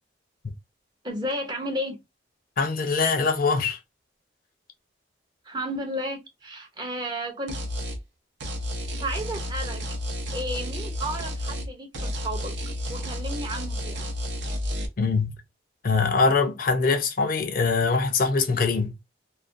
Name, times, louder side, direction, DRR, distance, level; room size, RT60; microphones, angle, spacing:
voice 1, 1.0-2.0 5.4-7.5 9.0-9.9 10.3-12.5 12.9-14.1, equal, 25° right, 0.5 m, -33 dB
voice 2, 2.6-3.8 15.0-15.4 15.8-18.9, left 4 dB, 50° left, 0.4 m, -23 dB
sound 1, 7.5-8.0 8.4-11.7 11.9-14.9, equal, 75° right, 0.6 m, -31 dB
2.4 x 2.1 x 2.5 m
head